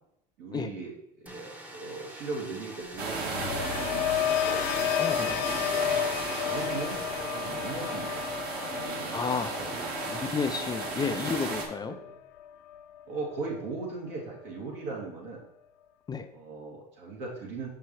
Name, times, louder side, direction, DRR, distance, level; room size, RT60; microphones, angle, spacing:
voice 1, 0.4-4.7 5.6-5.9 6.4-8.2 8.5-9.8 11.8-12.2 13.1-15.5 16.3-17.7, right 3 dB, 75° right, -3 dB, 2.6 m, -39 dB
sound 1, 1.3-8.1, right 1 dB, 5° right, 0.8 m, -44 dB
sound 2, 3.0-13.1 13.4-13.9, left 10 dB, 70° left, 0.6 m, -33 dB
sound 3, 3.0-11.7, right 3 dB, 50° right, 1.5 m, -34 dB
voice 2, 5.0-5.7 9.1-9.5 10.1-12.0 16.1-16.3, left 5 dB, 20° left, 8 dB, 0.4 m, -32 dB
6.7 x 5.6 x 3.1 m, 0.79 s
supercardioid pair, 110°, 21 cm